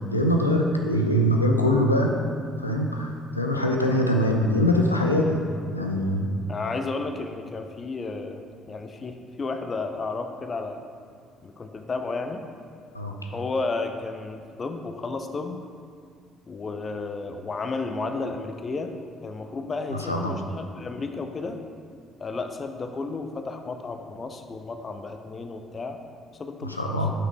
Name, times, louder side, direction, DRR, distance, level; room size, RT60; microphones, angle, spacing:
voice 1, 0.1-2.2 2.6-5.4 5.7-6.3 12.9-13.2 20.0-20.3 26.6-27.1, left 1 dB, 85° left, 1 dB, 0.4 m, -23 dB
voice 2, 6.5-8.4 8.7-10.8 11.4-12.4 13.3-15.6 16.5-18.9 19.2-21.6 22.2-26.0 26.4-26.8, left 3 dB, 35° left, 6 dB, 0.5 m, -32 dB
5.8 x 5.7 x 4.7 m, 2.2 s
figure-of-eight pair, 50°, 0 cm